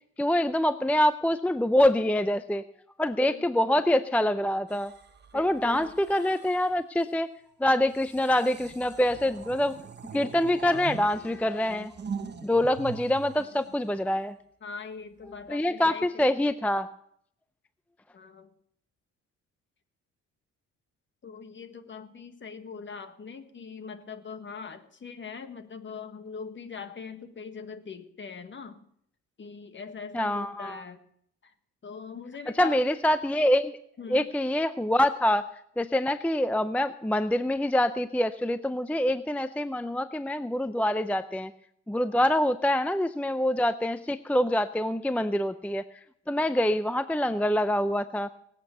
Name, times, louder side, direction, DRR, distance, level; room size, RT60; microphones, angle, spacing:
voice 1, 0.2-2.6 3.0-4.9 5.3-7.3 7.6-9.8 10.1-11.9 12.4-14.4 15.3-16.9 30.1-30.8 32.5-33.8 34.1-35.5 35.8-41.5 41.9-45.8 46.3-48.3, left 1 dB, 5° left, 12 dB, 0.5 m, -25 dB
voice 2, 3.3-3.8 5.3-5.9 14.6-16.2 18.1-18.5 21.2-28.8 29.4-31.0 31.4-31.5 31.8-32.9 34.0-34.3, left 5 dB, 40° left, 9 dB, 1.6 m, -41 dB
sound 1, 4.7-6.8 7.9-14.3 15.2-15.5, right 6 dB, 35° right, 1.2 m, -42 dB
20.0 x 8.2 x 6.8 m, 0.68 s
cardioid pair, 90°, 30 cm